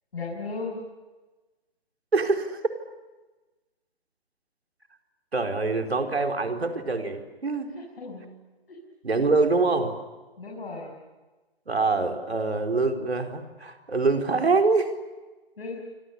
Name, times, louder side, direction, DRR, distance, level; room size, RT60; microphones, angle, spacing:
voice 1, 0.1-0.8 7.7-8.3 8.7-8.8 10.4-10.9 15.6-15.8, left 3 dB, 65° left, -1 dB, 7.5 m, -35 dB
voice 2, 2.1-2.6 5.3-7.7 9.0-9.9 11.7-14.9, right 3 dB, 80° right, 4 dB, 4.4 m, -24 dB
29.5 x 26.0 x 6.8 m, 1.2 s
figure-of-eight pair, 145°, 31 cm